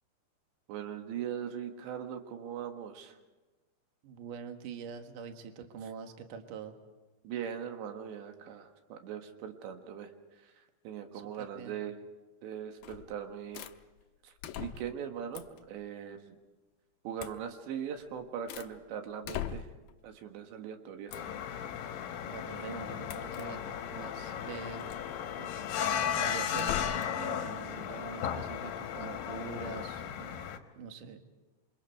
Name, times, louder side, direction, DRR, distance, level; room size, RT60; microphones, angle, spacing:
voice 1, 0.7-3.2 7.2-10.1 10.4-12.0 12.4-13.7 14.2-16.4 17.1-19.7 20.0-21.2, right 8 dB, 85° right, 5 dB, 3.9 m, -40 dB
voice 2, 4.0-6.7 11.1-11.8 22.3-23.6 23.9-25.0 25.4-25.5 25.9-30.4 30.8-31.2, right 6 dB, 60° right, 5 dB, 2.8 m, -44 dB
sound 1, 12.8-13.1 13.5-13.8 14.4-15.0 15.3-15.7 17.2-17.4 18.0-18.8 19.2-19.9 21.1-21.4 23.1-23.5 24.8-25.1 26.5-27.2, left 10 dB, 80° left, 2.0 m, -41 dB
sound 2, 21.1-30.6, left 9 dB, 65° left, 2.7 m, -35 dB
28.0 x 25.5 x 4.7 m, 1.2 s
omnidirectional pair, 5.0 m